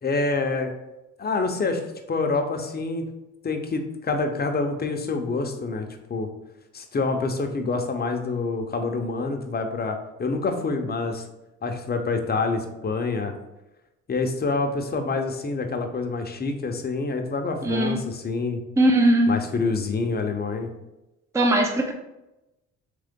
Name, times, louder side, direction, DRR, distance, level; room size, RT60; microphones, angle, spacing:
voice 1, 0.0-0.7 1.2-1.8 2.1-3.1 3.4-6.3 6.7-11.2 11.6-13.3 14.1-18.6 19.3-20.7, left 3 dB, 30° left, 5 dB, 0.7 m, -27 dB
voice 2, 17.6-18.0 18.8-19.4 21.3-21.9, right 1 dB, 10° right, 2 dB, 0.5 m, -19 dB
3.8 x 3.2 x 3.6 m, 0.95 s
cardioid pair, 90°, 30 cm